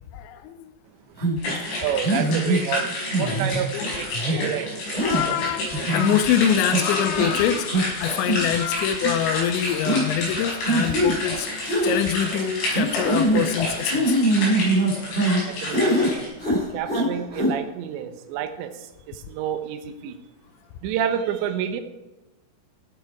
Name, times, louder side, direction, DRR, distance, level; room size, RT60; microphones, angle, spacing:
voice 1, 0.1-0.7 1.5-1.6 3.2-3.4 3.7-3.8 4.3-4.4 5.0-14.2, left 10 dB, 80° left, 9 dB, 2.7 m, -25 dB
sound 1, 1.2-1.4 2.0-2.6 3.1-3.6 4.1-4.4 5.0-5.2 5.7-6.2 6.7-6.8 7.2-7.4 7.7-7.8 8.2-8.6 8.9-9.1 9.8-10.0 10.6-11.2 11.6-12.0 12.7-13.4 13.9-15.4 15.7-16.1 16.4-17.1 17.3-17.5, right 1 dB, 10° left, 2.9 m, -22 dB
sound 2, 1.4-16.3, left 1 dB, 65° left, 7.8 m, -30 dB
voice 2, 1.8-5.1 15.5-16.3 16.7-20.2 20.8-21.8, right 9 dB, 75° right, 7 dB, 2.9 m, -29 dB
16.0 x 8.2 x 4.7 m, 1.1 s
omnidirectional pair, 5.7 m